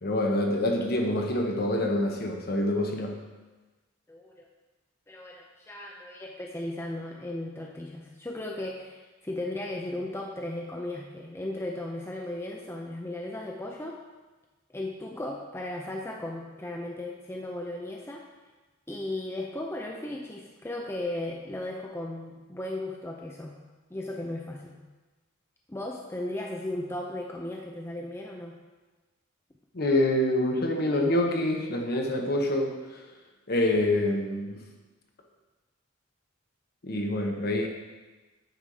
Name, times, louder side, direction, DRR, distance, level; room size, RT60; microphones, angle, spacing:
voice 1, 0.0-3.2 29.7-33.0 33.5-34.6 36.8-37.7, left 1 dB, 50° left, 1 dB, 1.0 m, -26 dB
voice 2, 4.1-4.5 5.1-14.0 14.7-18.2 18.9-23.6 23.9-24.8 25.7-28.6, left 1 dB, 10° left, 0 dB, 0.5 m, -36 dB
9.1 x 4.1 x 4.9 m, 1.2 s
head